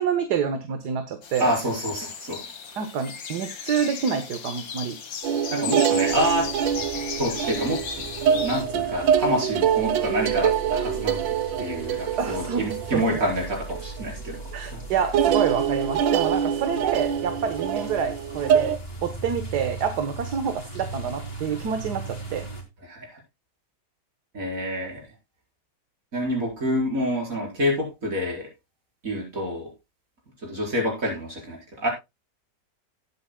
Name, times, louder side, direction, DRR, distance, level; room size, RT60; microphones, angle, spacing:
voice 1, 0.0-1.5 2.8-5.0 12.2-13.0 14.5-18.8 19.0-22.5, right 7 dB, 65° right, 8 dB, 1.7 m, -27 dB
sound 1, 1.2-8.6, left 6 dB, 80° left, 2.1 m, -36 dB
voice 2, 1.4-2.5 5.5-6.5 7.2-7.8 8.3-11.2 11.6-14.4 14.7-14.8 22.9-23.2 24.3-25.1 26.1-28.5 29.0-29.7 30.4-31.9, equal, 45° right, -1 dB, 5.3 m, -27 dB
sound 2, 5.2-14.0 14.3-14.7 15.1-18.8, right 8 dB, 90° right, 1.7 m, -25 dB
sound 3, 6.1-22.6, right 2 dB, 30° left, 3.0 m, -39 dB
17.5 x 8.9 x 2.2 m, 0.23 s
omnidirectional pair, 2.0 m